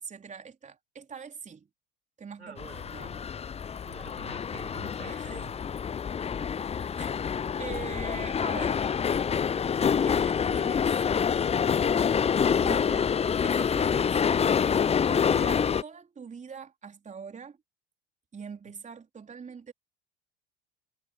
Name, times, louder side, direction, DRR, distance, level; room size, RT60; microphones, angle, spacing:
voice 1, 0.0-1.7 2.2-2.6 2.9-3.2 3.7-3.8 5.0-5.4 7.0-7.2 7.6-8.9 10.0-11.0 12.3-14.2 15.1-17.6 18.3-19.7, right 6 dB, 20° right, 3.7 m, -43 dB
voice 2, 2.4-3.2 3.8-5.6 18.7-18.8, right 4 dB, 85° right, 5.0 m, -48 dB
sound 1, 2.6-15.8, left 7 dB, 20° left, 0.8 m, -27 dB
figure-of-eight pair, 70°, 32 cm